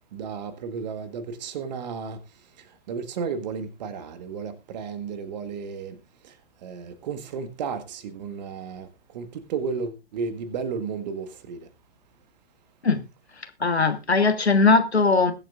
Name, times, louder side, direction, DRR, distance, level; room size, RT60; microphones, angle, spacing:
voice 1, 0.1-2.2 2.9-6.0 6.2-6.3 6.6-11.7, right 5 dB, 40° right, 1.6 m, -33 dB
voice 2, 13.6-15.3, left 4 dB, 85° left, 1.6 m, -20 dB
21.0 x 7.8 x 2.5 m
figure-of-eight pair, 120°, 32 cm